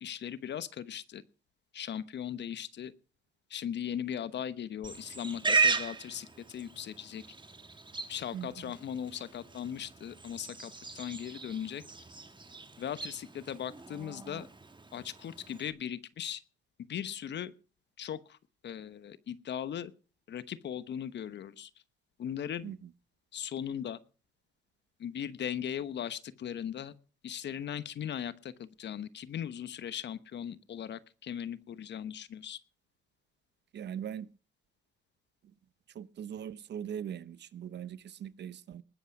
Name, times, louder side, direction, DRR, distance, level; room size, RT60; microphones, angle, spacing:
voice 1, 0.0-1.2 1.7-2.9 3.5-7.2 8.1-11.8 12.8-14.5 14.9-16.4 16.9-17.5 18.0-18.4 18.6-19.9 20.3-21.7 22.2-22.7 23.3-24.0 25.0-26.9 27.2-32.6, left 9 dB, 65° left, 1.1 m, -38 dB
Livestock farm animals working animals, 4.8-15.7, right 4 dB, 25° right, 1.8 m, -36 dB
voice 2, 8.3-8.7 22.6-22.9 33.7-34.3 35.9-38.8, right 9 dB, 65° right, 0.8 m, -41 dB
20.0 x 8.3 x 6.0 m
supercardioid pair, 55°, 19 cm